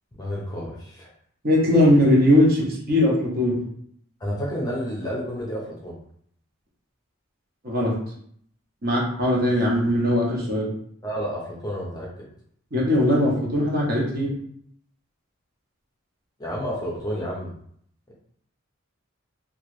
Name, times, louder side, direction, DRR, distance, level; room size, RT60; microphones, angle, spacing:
voice 1, 0.2-1.1 4.2-6.0 11.0-12.3 16.4-17.5, equal, 20° left, -4 dB, 0.6 m, -30 dB
voice 2, 1.4-3.6 7.6-7.9 8.8-10.7 12.7-14.3, left 1 dB, 45° right, -4 dB, 0.9 m, -20 dB
3.0 x 2.4 x 3.1 m, 0.66 s
head